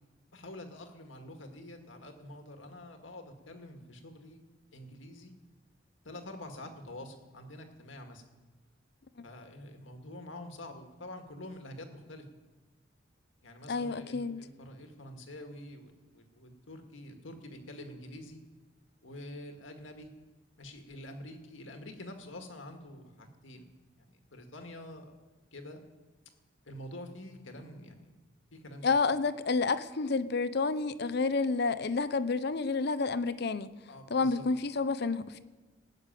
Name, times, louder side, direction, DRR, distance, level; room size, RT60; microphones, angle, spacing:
voice 1, 0.3-4.4 4.7-5.3 6.0-8.2 9.2-12.2 13.4-18.4 19.0-20.1 20.6-23.6 24.1-25.1 25.5-25.8 26.6-28.2 28.5-28.8 33.9-34.4, left 1 dB, 85° left, 5 dB, 1.9 m, -47 dB
voice 2, 13.7-14.4 28.8-33.7 34.1-35.4, left 4 dB, 60° left, 14 dB, 0.7 m, -29 dB
18.0 x 6.7 x 9.1 m, 1.3 s
head